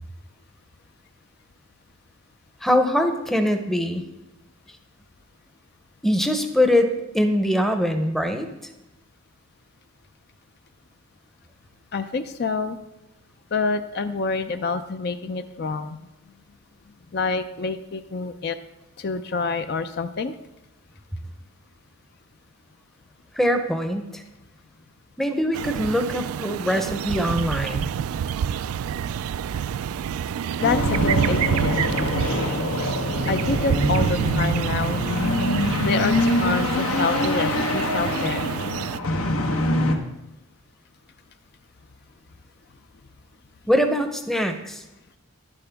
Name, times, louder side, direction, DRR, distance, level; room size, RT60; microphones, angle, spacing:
voice 1, 2.6-4.0 6.0-8.7 23.3-24.2 25.2-27.9 43.7-44.8, equal, ahead, 6 dB, 0.7 m, -23 dB
voice 2, 11.9-12.8 13.5-16.0 17.1-18.6 19.0-20.3 30.6-31.8 33.3-35.0 35.8-38.5, left 4 dB, 50° left, 9 dB, 0.4 m, -27 dB
sound 1, 25.5-39.0, right 8 dB, 85° right, 0.3 m, -27 dB
sound 2, 30.6-40.0, left 2 dB, 80° left, 1.1 m, -25 dB
11.0 x 10.5 x 3.5 m, 0.98 s
head